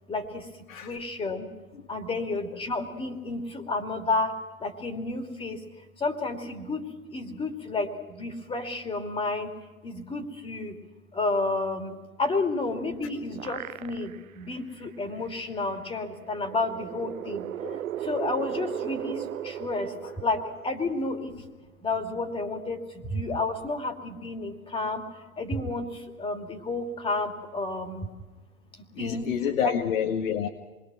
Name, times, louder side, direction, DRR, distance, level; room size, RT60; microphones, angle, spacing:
voice 1, 0.8-1.5 1.9-4.3 4.6-5.6 6.0-6.8 7.1-7.9 8.2-9.5 9.8-10.7 11.1-11.9 12.2-14.1 14.4-17.4 18.1-19.2 19.4-19.9 20.2-20.4 20.6-21.3 21.8-22.8 23.1-25.0 25.4-25.9 26.2-28.0 29.0-29.3 29.6-29.7, left 3 dB, 15° left, 5 dB, 2.7 m, -30 dB
sound 1, 12.7-14.4 14.8-14.9 16.2-21.0, right 11 dB, 70° right, 0.9 m, -36 dB
voice 2, 29.0-30.5, left 8 dB, 65° left, 3 dB, 2.0 m, -28 dB
27.0 x 22.5 x 6.3 m, 1.2 s
hypercardioid pair, 125°, 43 cm